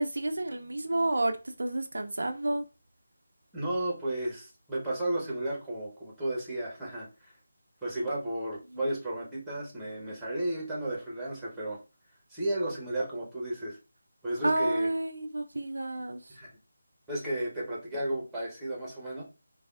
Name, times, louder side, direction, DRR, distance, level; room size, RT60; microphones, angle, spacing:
voice 1, 0.0-2.6 14.4-16.2, right 1 dB, 75° right, 0.4 m, -30 dB
voice 2, 3.5-7.3 7.8-11.8 12.3-13.8 14.2-14.9 16.3-16.5 17.1-19.2, right 1 dB, 5° right, 0.9 m, -33 dB
3.3 x 2.3 x 2.4 m
figure-of-eight pair, 160°, 0 cm